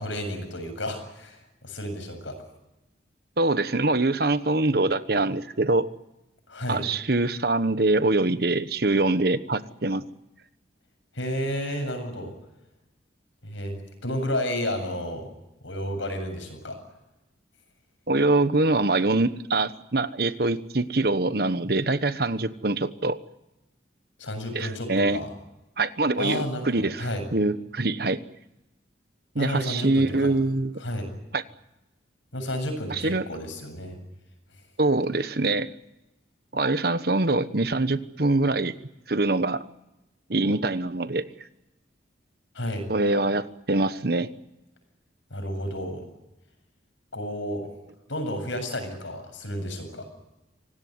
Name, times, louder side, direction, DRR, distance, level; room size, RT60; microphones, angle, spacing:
voice 1, 0.0-2.4 6.5-6.8 11.1-12.3 13.4-15.3 15.6-16.8 24.2-25.3 26.2-27.2 29.4-30.3 30.8-31.1 32.3-34.0 42.5-42.8 45.3-46.0 47.1-47.7 48.1-50.1, left 1 dB, 90° left, 6 dB, 7.8 m, -31 dB
voice 2, 3.4-5.9 6.7-10.0 18.1-23.2 24.5-25.2 25.8-28.2 29.3-30.8 31.3-31.4 32.9-33.3 34.8-35.7 36.5-38.7 39.1-39.6 40.3-41.3 42.9-44.3, right 2 dB, 55° right, 12 dB, 1.2 m, -24 dB
26.0 x 18.5 x 9.5 m, 0.95 s
head